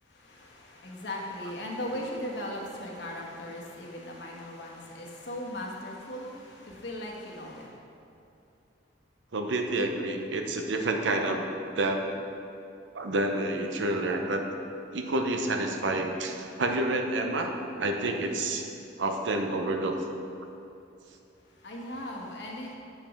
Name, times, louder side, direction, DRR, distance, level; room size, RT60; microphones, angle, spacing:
voice 1, 0.0-7.8 21.4-22.8, left 1 dB, 65° left, -2 dB, 1.2 m, -38 dB
voice 2, 9.3-11.5 11.8-12.0 12.9-14.5 14.9-18.7 19.0-20.0, right 2 dB, 80° right, 4 dB, 0.7 m, -29 dB
7.7 x 4.9 x 5.1 m, 2.7 s
head